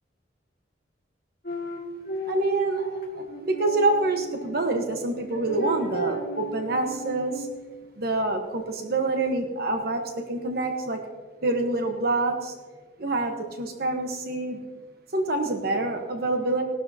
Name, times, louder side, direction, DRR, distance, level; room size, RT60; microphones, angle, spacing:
sound 1, 1.4-4.6 5.3-7.6, right 2 dB, 50° left, 2.1 m, -33 dB
voice 1, 2.3-7.5 8.0-11.0 11.4-12.5 13.0-14.6 15.1-16.6, right 2 dB, 55° right, 4 dB, 1.1 m, -26 dB
18.0 x 12.0 x 2.8 m, 1.4 s
head